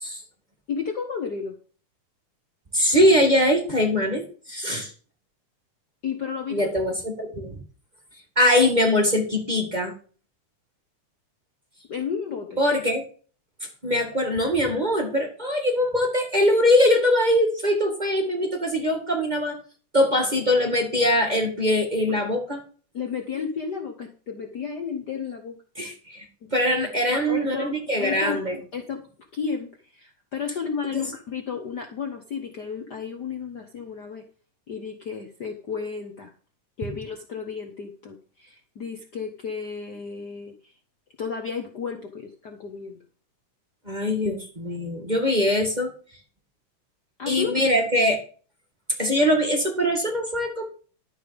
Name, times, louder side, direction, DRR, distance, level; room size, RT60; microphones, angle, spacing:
voice 1, 0.7-1.5 6.0-6.7 11.9-12.6 22.9-25.5 26.4-26.5 27.1-28.4 28.7-29.0 29.3-34.2 34.7-36.3 36.8-40.5 41.2-43.0 47.2-47.6, left 6 dB, 85° left, 3 dB, 0.9 m, -32 dB
voice 2, 2.7-4.9 6.5-7.6 8.3-9.9 12.6-13.0 13.8-19.6 19.9-22.6 25.8-26.2 26.5-28.6 30.9-31.0 43.8-45.9 47.3-48.2 49.0-50.7, left 1 dB, 20° right, 2 dB, 1.4 m, -22 dB
11.5 x 7.4 x 5.2 m, 0.41 s
omnidirectional pair, 3.6 m